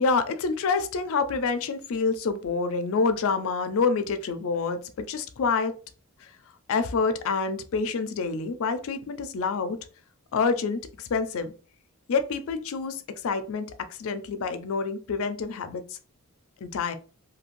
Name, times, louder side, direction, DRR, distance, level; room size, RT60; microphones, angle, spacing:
voice 1, 0.0-5.7 6.7-9.8 10.3-11.5 12.1-15.8 16.6-16.9, left 4 dB, 65° left, 10 dB, 0.4 m, -27 dB
2.7 x 2.5 x 3.0 m, 0.37 s
head